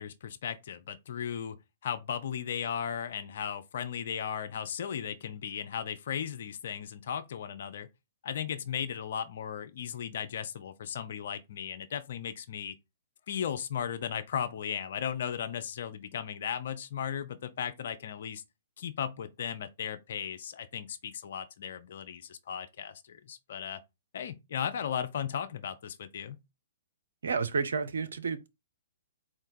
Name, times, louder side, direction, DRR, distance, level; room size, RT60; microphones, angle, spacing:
voice 1, 0.0-7.9 8.2-12.8 13.3-18.4 18.8-23.8 24.1-26.4, left 8 dB, 55° left, 0.6 m, -36 dB
voice 2, 27.2-28.5, right 5 dB, 65° right, 0.6 m, -31 dB
4.2 x 2.3 x 4.6 m
figure-of-eight pair, 120°, 0 cm